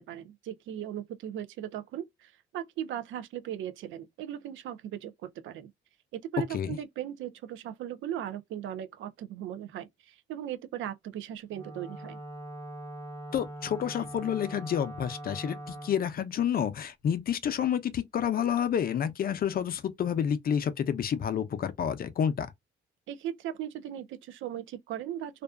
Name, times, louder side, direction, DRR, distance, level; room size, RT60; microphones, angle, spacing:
voice 1, 0.0-5.7 6.1-12.2 23.1-25.4, right 11 dB, 75° right, 0.5 m, -38 dB
Wind instrument woodwind instrument, 11.5-16.0, right 1 dB, 15° left, 0.9 m, -42 dB
voice 2, 13.3-22.5, left 8 dB, 50° left, 0.5 m, -29 dB
2.5 x 2.2 x 2.2 m
cardioid pair, 90°, 20 cm